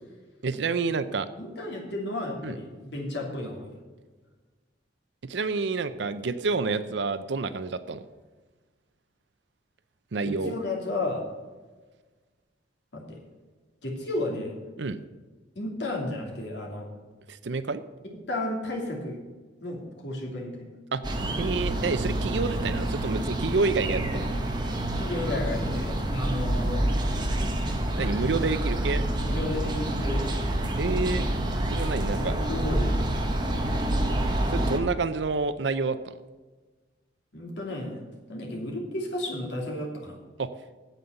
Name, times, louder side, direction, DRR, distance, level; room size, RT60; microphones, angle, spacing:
voice 1, 0.4-1.3 2.4-2.5 5.3-8.0 10.1-10.5 14.8-15.0 17.3-17.8 20.9-21.0 21.4-24.3 28.0-29.1 30.8-31.3 31.7-32.3 34.5-36.2 40.4-40.5, right 4 dB, 75° right, 12 dB, 0.6 m, -28 dB
voice 2, 1.3-3.7 10.2-11.2 12.9-13.2 13.8-14.5 15.5-16.9 18.3-19.2 19.6-20.6 24.1-24.2 24.9-27.0 29.2-30.2 32.2-33.1 37.3-38.0 38.3-40.2, left 1 dB, 70° left, -1 dB, 2.9 m, -33 dB
sound 1, 21.0-34.8, right 1 dB, 25° right, 1.2 m, -27 dB
9.1 x 8.0 x 6.9 m, 1.3 s
head